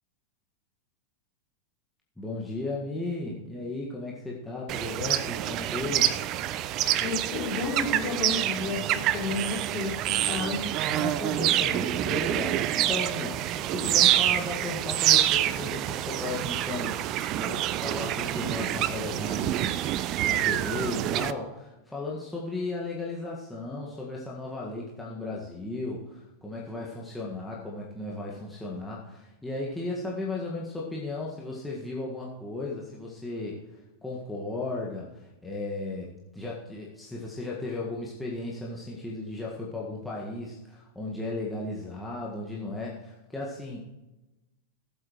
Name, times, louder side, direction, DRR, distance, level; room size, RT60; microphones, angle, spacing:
voice 1, 2.2-6.1 10.8-43.8, left 2 dB, 5° left, -5 dB, 1.7 m, -35 dB
sound 1, 4.7-21.3, right 12 dB, 35° right, 0.5 m, -27 dB
voice 2, 7.0-10.6, left 4 dB, 30° left, -2 dB, 3.3 m, -32 dB
18.5 x 8.2 x 3.1 m, 1.0 s
figure-of-eight pair, 90°, 0 cm